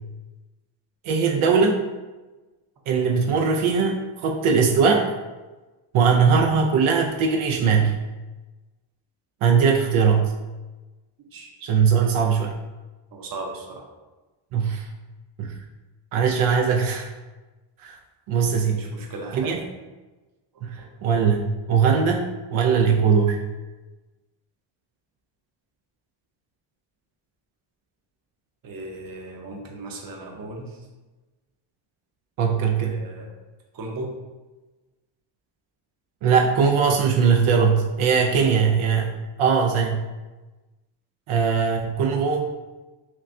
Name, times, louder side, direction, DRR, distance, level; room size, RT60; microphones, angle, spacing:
voice 1, 1.0-1.8 2.9-5.1 5.9-8.0 9.4-10.3 11.6-12.5 14.5-14.9 15.4-15.6 16.1-17.1 17.8-18.0 18.3-18.8 19.3-19.6 20.6-23.4 32.4-33.0 36.2-40.0 41.3-42.5, right 6 dB, 80° right, 1 dB, 0.6 m, -20 dB
voice 2, 13.1-13.9 18.7-19.6 20.5-20.9 28.6-30.9 32.8-33.3 33.7-34.1, right 2 dB, 45° right, 1 dB, 0.8 m, -37 dB
5.8 x 2.1 x 2.6 m, 1.2 s
cardioid pair, 130°, 48 cm